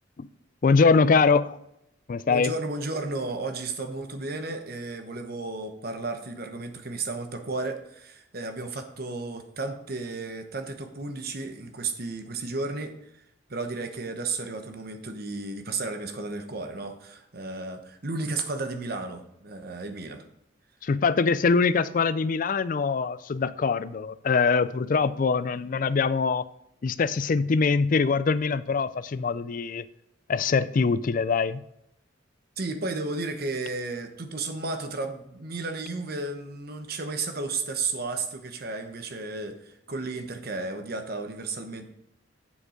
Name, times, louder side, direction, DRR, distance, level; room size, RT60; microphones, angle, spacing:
voice 1, 0.6-1.6 2.1-2.5 20.8-26.4 26.8-29.9 30.3-31.6, left 4 dB, 45° left, 0.4 m, -23 dB
voice 2, 2.3-13.0 13.5-20.2 32.6-41.9, right 3 dB, 50° right, 1.0 m, -33 dB
7.3 x 6.7 x 5.0 m
head